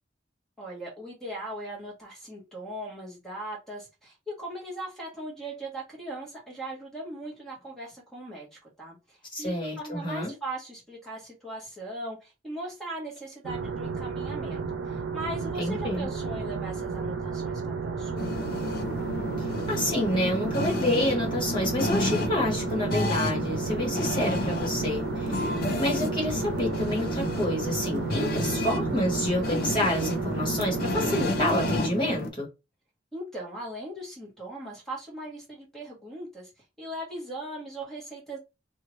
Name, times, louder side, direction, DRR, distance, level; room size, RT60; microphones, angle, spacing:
voice 1, 0.6-8.5 8.8-18.4 33.1-36.5 36.8-38.4, right 1 dB, ahead, 1.3 m, -39 dB
voice 2, 9.3-10.3 15.6-16.1 19.4-25.5 25.8-32.5, left 1 dB, 25° left, 1.3 m, -28 dB
sound 1, 13.4-31.8, right 5 dB, 85° right, 0.6 m, -33 dB
sound 2, 18.2-32.3, left 1 dB, 55° left, 0.5 m, -31 dB
2.7 x 2.3 x 3.1 m
head